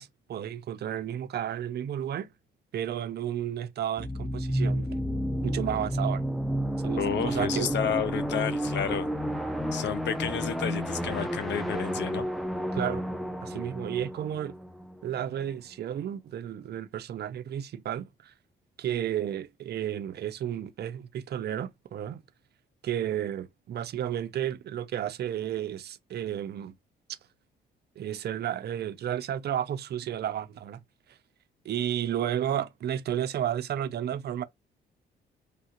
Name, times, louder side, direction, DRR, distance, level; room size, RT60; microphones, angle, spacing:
voice 1, 0.0-2.3 2.7-5.0 5.4-6.2 6.8-7.7 12.7-13.1 13.4-14.5 15.0-18.3 18.8-22.2 22.8-26.7 28.0-30.8 31.6-34.4, right 10 dB, 55° right, 0.5 m, -32 dB
sound 1, 4.0-15.5, equal, ahead, 0.5 m, -31 dB
voice 2, 7.0-9.1 9.7-12.3, left 8 dB, 65° left, 0.6 m, -31 dB
3.1 x 2.4 x 2.9 m
cardioid pair, 90°, 20 cm